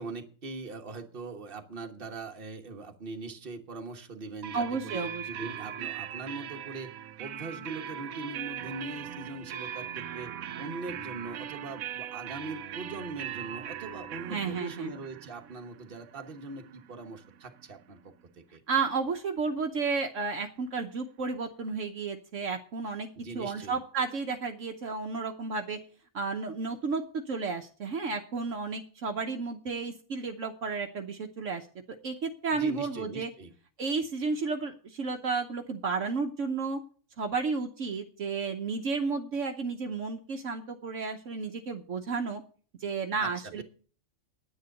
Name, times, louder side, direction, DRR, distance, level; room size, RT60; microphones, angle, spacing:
voice 1, 0.0-6.9 7.2-10.3 10.6-18.6 23.2-23.8 32.5-33.5 43.2-43.6, right 3 dB, 45° right, 4 dB, 1.4 m, -41 dB
sound 1, 4.4-18.0, right 10 dB, 90° right, 1.1 m, -40 dB
voice 2, 4.5-5.3 14.3-14.9 18.7-23.1 23.3-25.8 26.1-31.7 32.0-33.3 33.8-36.8 37.2-42.4 42.8-43.6, right 4 dB, 65° right, 4 dB, 1.2 m, -32 dB
9.7 x 9.4 x 6.5 m, 0.42 s
omnidirectional pair, 1.4 m